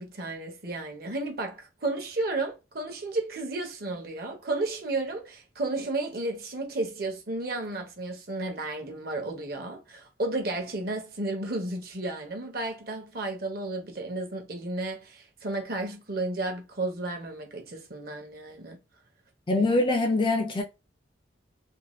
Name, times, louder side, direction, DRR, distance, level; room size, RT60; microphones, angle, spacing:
voice 1, 0.0-18.8, right 2 dB, 50° right, 0.8 m, -33 dB
voice 2, 19.5-20.6, left 2 dB, 25° left, 0.4 m, -23 dB
2.6 x 2.2 x 3.0 m
head